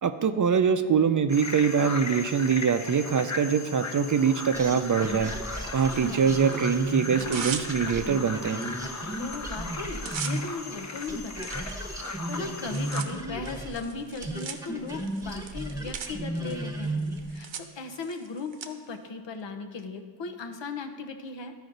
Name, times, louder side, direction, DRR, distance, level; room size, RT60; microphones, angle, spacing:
voice 1, 0.0-5.3 5.7-8.6, right 6 dB, 45° right, 9 dB, 0.5 m, -24 dB
sound 1, 1.3-13.0, left 3 dB, 35° left, 0.8 m, -37 dB
sound 2, 4.5-10.8 11.1-17.3, right 1 dB, 5° right, 1.1 m, -34 dB
voice 2, 5.6-6.3 9.2-11.8 12.3-21.5, left 4 dB, 65° left, 5 dB, 0.9 m, -38 dB
Tearing, 5.7-6.6 7.0-8.1 8.6-8.7 9.0-9.4 9.6-18.7, right 7 dB, 70° right, 0.8 m, -41 dB
12.5 x 5.0 x 3.9 m, 1.5 s
cardioid pair, 60°, 47 cm